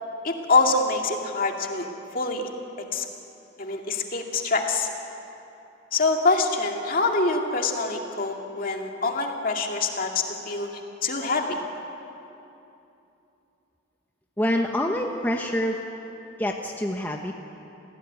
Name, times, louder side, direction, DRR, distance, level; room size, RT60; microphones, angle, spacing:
voice 1, 0.2-2.4 2.9-3.1 3.6-4.9 5.9-11.6, left 3 dB, 45° left, 2 dB, 2.4 m, -25 dB
voice 2, 14.4-15.8 16.4-17.3, left 1 dB, 10° left, 1 dB, 1.1 m, -26 dB
28.0 x 17.0 x 9.6 m, 2.8 s
head